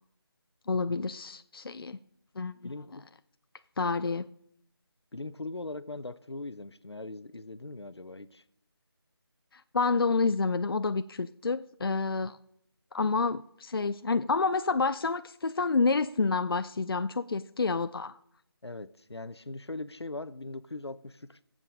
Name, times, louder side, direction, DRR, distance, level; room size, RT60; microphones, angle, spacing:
voice 1, 0.7-2.0 2.4-2.6 3.8-4.3 9.5-12.4 12.9-18.1, left 4 dB, 60° left, 0.4 m, -28 dB
voice 2, 2.6-3.1 5.1-8.4 18.6-21.4, left 2 dB, 85° left, 0.7 m, -40 dB
20.5 x 7.6 x 3.7 m
figure-of-eight pair, 160°, 13 cm